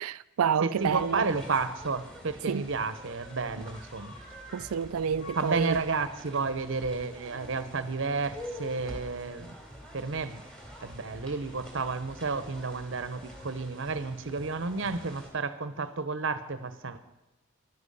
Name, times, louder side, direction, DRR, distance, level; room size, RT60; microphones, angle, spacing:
voice 1, 0.0-1.3 2.5-2.7 4.5-5.8, right 7 dB, 85° right, 0.4 m, -29 dB
voice 2, 0.6-4.1 5.3-9.5 9.9-10.4 10.8-17.0, right 4 dB, 60° right, 0.9 m, -31 dB
sound 1, 0.7-15.3, equal, 5° left, 2.9 m, -46 dB
15.0 x 12.0 x 5.5 m
head